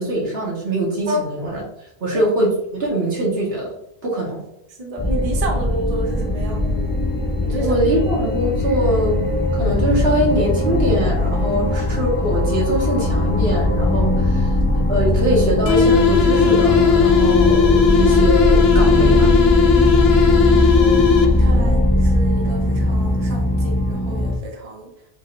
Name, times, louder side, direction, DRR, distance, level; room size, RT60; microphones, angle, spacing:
voice 1, 0.0-1.6 2.0-3.7 4.0-4.4 7.6-14.5 14.9-19.3 20.7-20.8, right 1 dB, 75° right, -4 dB, 1.6 m, -22 dB
voice 2, 4.8-6.9 7.4-7.8 19.7-20.3 21.4-24.9, right 1 dB, 40° right, 0 dB, 0.8 m, -30 dB
sound 1, 5.0-24.4, left 1 dB, 15° left, 0.6 m, -19 dB
sound 2, 15.7-21.6, left 6 dB, 75° left, 0.8 m, -16 dB
4.7 x 3.5 x 2.5 m, 0.80 s
omnidirectional pair, 1.1 m